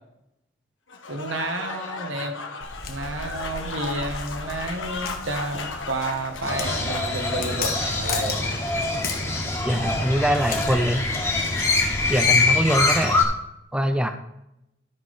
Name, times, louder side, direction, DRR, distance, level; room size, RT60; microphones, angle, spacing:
Applause / Crowd, 0.9-9.7, left 4 dB, 80° left, 1.3 m, -35 dB
voice 1, 1.1-2.3 2.9-8.7, right 2 dB, 85° right, 5 dB, 1.4 m, -31 dB
Walk footsteps, 2.6-12.2, left 4 dB, 50° left, 1.2 m, -36 dB
Crow, 6.5-13.2, left 3 dB, 15° left, 1.4 m, -24 dB
voice 2, 9.6-11.1 12.1-13.2 13.7-14.1, equal, 5° right, 7 dB, 0.5 m, -23 dB
13.0 x 5.2 x 4.2 m, 0.82 s
head